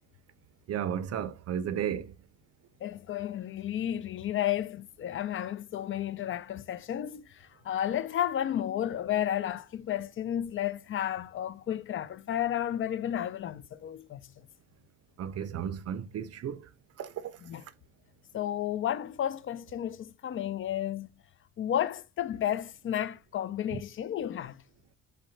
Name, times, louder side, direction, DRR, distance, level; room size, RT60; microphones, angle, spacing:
voice 1, 0.7-2.1 15.2-16.6 17.0-17.1 23.7-23.8, right 9 dB, 55° right, 0.5 m, -33 dB
voice 2, 2.8-7.3 7.6-14.2 17.4-17.6 18.3-21.1 21.6-24.6, left 11 dB, 45° left, 0.4 m, -32 dB
3.6 x 2.2 x 4.3 m
cardioid pair, 90°, 30 cm